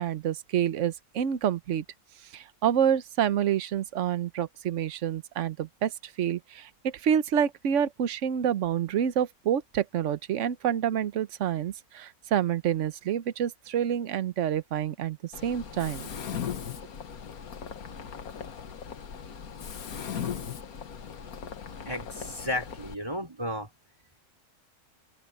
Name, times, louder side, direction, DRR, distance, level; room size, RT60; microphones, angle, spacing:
voice 1, 0.0-1.8 2.3-16.1, right 9 dB, 60° right, 1.1 m, -28 dB
Mechanisms, 15.3-22.9, left 7 dB, 70° left, 1.7 m, -38 dB
voice 2, 21.9-23.7, left 1 dB, 15° right, 4.2 m, -33 dB
open air
omnidirectional pair, 1.6 m